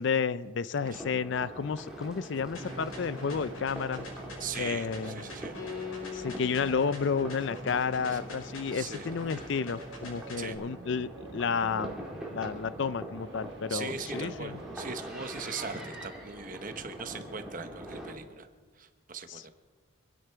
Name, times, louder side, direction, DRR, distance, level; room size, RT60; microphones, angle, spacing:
voice 1, 0.0-4.1 4.6-5.2 6.1-14.6 19.3-19.5, left 5 dB, 55° left, 16 dB, 0.4 m, -31 dB
sound 1, 0.8-18.1, right 1 dB, 5° right, 2.2 m, -43 dB
sound 2, 2.4-15.8, right 2 dB, 60° right, 1.2 m, -51 dB
sound 3, 2.5-10.5, left 3 dB, 90° left, 5.8 m, -43 dB
voice 2, 4.4-5.5 6.1-6.2 8.1-8.2 8.7-9.1 10.4-10.6 13.7-18.5 18.8-19.5, right 5 dB, 40° right, 9 dB, 1.0 m, -40 dB
26.0 x 10.0 x 4.6 m, 1.4 s
head